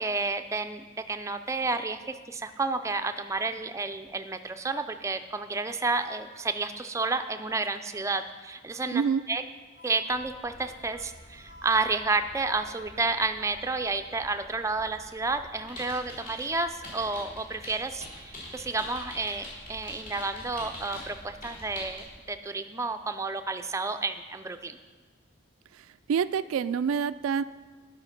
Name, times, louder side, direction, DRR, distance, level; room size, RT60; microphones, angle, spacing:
voice 1, 0.0-9.0 9.3-9.4 9.8-24.8, right 3 dB, 15° right, 8 dB, 0.4 m, -31 dB
voice 2, 8.9-9.2 26.1-27.4, right 6 dB, 90° right, 15 dB, 0.3 m, -26 dB
Wind instrument woodwind instrument, 9.8-14.0, equal, 65° left, 3.1 m, -52 dB
sound 1, 10.1-22.2, equal, 25° left, 3.7 m, -53 dB
sound 2, 15.7-16.5 16.8-21.1 21.4-22.0, left 1 dB, 40° left, 3.4 m, -42 dB
11.0 x 5.7 x 5.9 m, 1.4 s
head